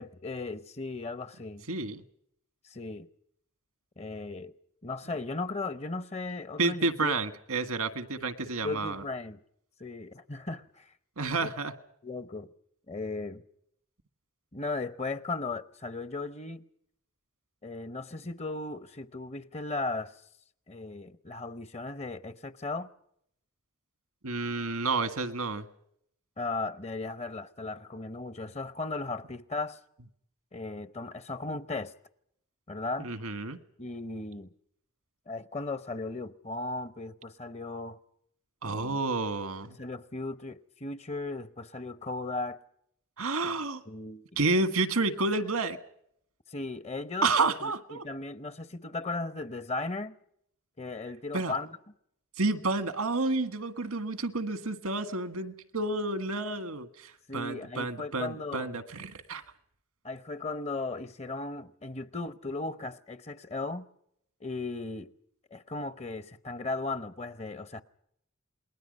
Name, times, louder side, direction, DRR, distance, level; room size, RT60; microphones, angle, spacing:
voice 1, 0.0-1.7 2.6-3.1 4.0-4.5 4.8-7.1 8.6-9.4 9.8-10.9 11.4-11.5 12.0-12.5 12.9-13.4 14.5-16.6 17.6-20.2 20.7-22.9 26.4-29.8 30.5-31.9 32.7-33.1 33.8-34.5 35.3-38.0 38.6-39.0 39.8-42.6 43.4-44.2 46.5-50.2 50.8-51.8 57.3-58.7 60.0-63.9 64.4-65.1 65.5-67.8, left 3 dB, 30° left, 0.8 m, -36 dB
voice 2, 1.7-2.0 6.6-9.0 11.2-11.7 24.2-25.7 33.0-33.6 38.6-39.8 43.2-43.8 44.4-45.8 47.2-48.1 51.3-51.5 52.4-59.4, right 3 dB, 90° right, 1.7 m, -30 dB
28.5 x 21.0 x 5.3 m
head